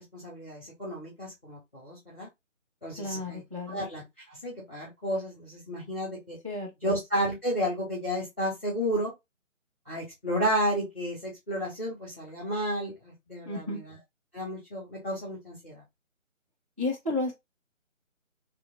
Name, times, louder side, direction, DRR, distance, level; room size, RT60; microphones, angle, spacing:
voice 1, 0.0-2.3 2.8-6.4 6.8-9.1 9.9-14.0 14.3-15.8, equal, 10° left, 0.8 m, -32 dB
voice 2, 3.0-3.8 6.4-7.0 13.5-13.8 16.8-17.3, left 2 dB, 25° right, 0.6 m, -32 dB
3.3 x 2.9 x 2.5 m
figure-of-eight pair, 155°, 40 cm